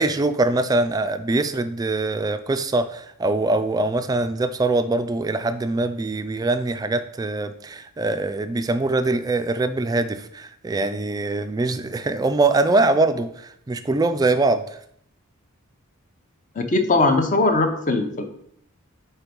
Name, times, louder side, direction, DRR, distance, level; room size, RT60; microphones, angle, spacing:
voice 1, 0.0-14.6, right 2 dB, 15° right, 10 dB, 0.3 m, -23 dB
voice 2, 16.6-18.3, left 2 dB, 35° left, 6 dB, 0.7 m, -20 dB
4.5 x 4.4 x 5.2 m, 0.69 s
head